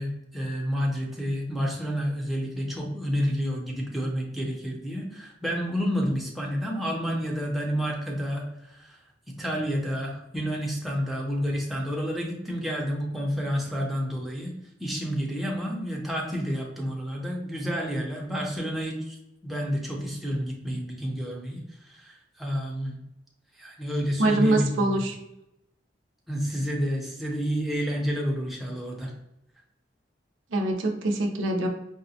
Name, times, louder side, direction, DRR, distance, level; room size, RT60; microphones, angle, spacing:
voice 1, 0.0-9.0 9.4-14.5 14.8-19.2 19.4-21.6 21.9-23.0 23.6-24.9 26.3-29.1, equal, ahead, -3 dB, 0.6 m, -29 dB
voice 2, 24.2-25.1 30.5-31.7, right 2 dB, 90° right, 3 dB, 0.6 m, -24 dB
4.9 x 2.1 x 2.7 m, 0.85 s
head